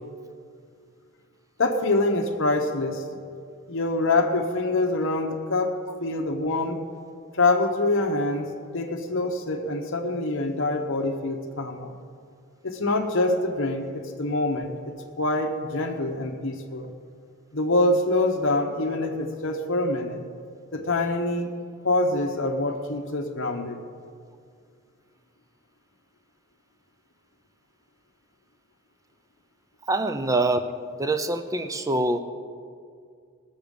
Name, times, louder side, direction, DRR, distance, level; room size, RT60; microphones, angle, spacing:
voice 1, 1.6-3.0 3.7-5.7 6.0-6.8 7.3-11.9 12.6-14.7 15.2-16.9 17.5-20.2 20.7-21.5 21.8-23.8, left 2 dB, 55° left, 3 dB, 1.0 m, -25 dB
voice 2, 29.9-30.6 31.0-32.2, right 2 dB, 15° right, 9 dB, 0.6 m, -24 dB
20.5 x 7.3 x 5.4 m, 2.2 s
head